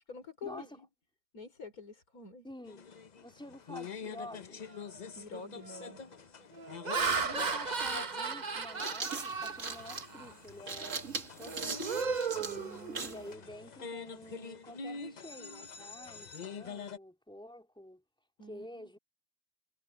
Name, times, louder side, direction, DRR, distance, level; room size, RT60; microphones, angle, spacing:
voice 1, 0.1-0.9 1.3-2.5 5.1-6.0 12.4-13.3 18.4-19.0, left 3 dB, 65° left, 4.4 m, -48 dB
voice 2, 2.4-2.9 3.2-4.7 6.9-12.0 13.0-18.0 18.5-19.0, left 1 dB, 5° left, 3.7 m, -49 dB
sound 1, 2.6-17.0, left 5 dB, 40° left, 0.6 m, -46 dB
Laughter, 4.8-5.0 5.6-5.9 6.5-10.3 10.8-11.0 11.4-13.3, right 5 dB, 35° right, 0.9 m, -35 dB
sound 2, 8.5-13.3, right 4 dB, 50° right, 2.1 m, -40 dB
omnidirectional pair, 1.7 m